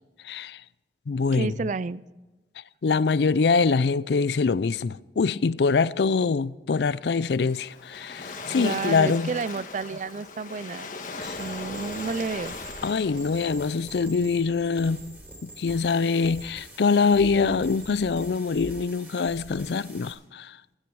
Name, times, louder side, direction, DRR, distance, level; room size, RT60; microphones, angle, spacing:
voice 1, 0.2-0.6 1.1-1.5 2.8-9.3 11.2-11.4 12.8-15.1 15.4-20.5, left 4 dB, 65° left, 0.4 m, -24 dB
voice 2, 1.3-2.0 8.5-10.9 11.2-12.6, right 4 dB, 45° right, 0.4 m, -31 dB
Waves surf, 7.4-14.2, left 4 dB, 45° left, 1.4 m, -39 dB
sound 1, 11.2-20.1, right 1 dB, 10° right, 3.6 m, -44 dB
15.5 x 13.5 x 4.7 m
head